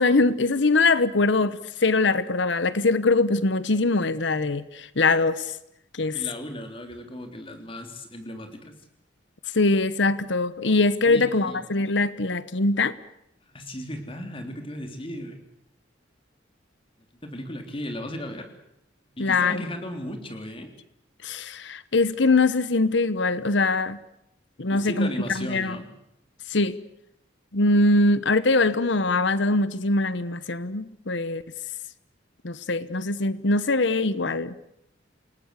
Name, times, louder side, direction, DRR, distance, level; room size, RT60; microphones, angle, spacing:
voice 1, 0.0-5.5 5.9-6.2 9.5-12.9 19.2-19.6 21.2-24.0 24.6-25.1 25.3-25.8 26.5-26.8 27.5-31.4 32.4-34.5, left 3 dB, 70° left, 1.0 m, -22 dB
voice 2, 6.1-8.7 11.1-11.6 13.5-15.4 17.2-18.5 19.2-20.7 24.7-25.9, left 1 dB, 30° left, 3.5 m, -36 dB
29.0 x 19.0 x 8.3 m
head